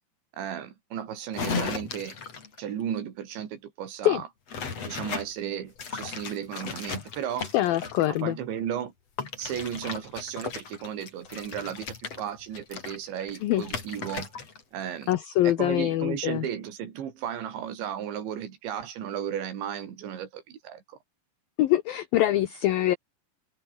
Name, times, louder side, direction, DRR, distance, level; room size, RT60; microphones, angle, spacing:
voice 1, 0.4-2.2 2.6-4.3 4.9-7.5 8.1-8.9 9.4-14.3 14.7-15.1 15.4-21.0, right 9 dB, 75° right, 5.3 m, -34 dB
sound 1, 1.3-2.6 4.5-5.3 5.8-8.2 9.2-14.6 14.9-15.1, left 5 dB, 35° left, 4.3 m, -36 dB
voice 2, 7.5-8.4 13.4-13.6 15.1-16.5 21.6-23.0, left 14 dB, 70° left, 2.4 m, -24 dB
omnidirectional pair, 5.3 m